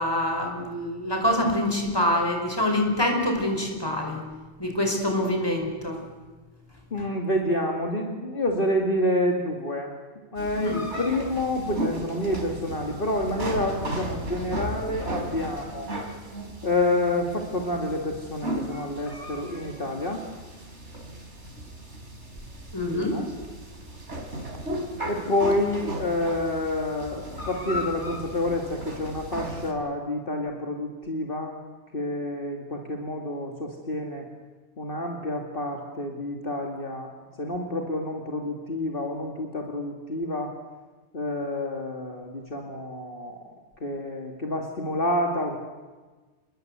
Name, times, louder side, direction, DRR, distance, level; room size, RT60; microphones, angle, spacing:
voice 1, 0.0-4.2 4.6-6.0 10.5-10.8 22.7-23.2, left 1 dB, 20° left, 3 dB, 5.2 m, -25 dB
voice 2, 6.9-9.9 10.3-15.9 16.6-20.2 22.9-23.3 25.1-31.6 31.9-34.3 34.8-37.1 37.4-40.6 41.1-43.5 43.8-45.6, left 1 dB, 50° left, 1 dB, 2.5 m, -28 dB
sound 1, 10.4-29.7, equal, 80° right, 4.0 m, -35 dB
28.5 x 21.0 x 8.0 m, 1.3 s
omnidirectional pair, 1.2 m